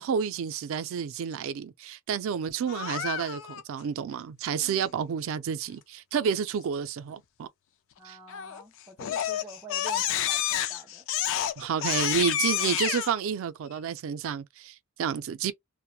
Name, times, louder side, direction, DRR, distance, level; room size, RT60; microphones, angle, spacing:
voice 1, 0.0-7.5 8.0-8.2 11.6-15.5, right 7 dB, 70° right, 0.3 m, -30 dB
Crying sobbing, 2.7-3.6 8.3-8.6 9.0-13.1, left 11 dB, 65° left, 0.3 m, -29 dB
voice 2, 4.5-5.0 8.0-11.7, right 1 dB, 5° right, 0.5 m, -49 dB
2.8 x 2.1 x 2.2 m
head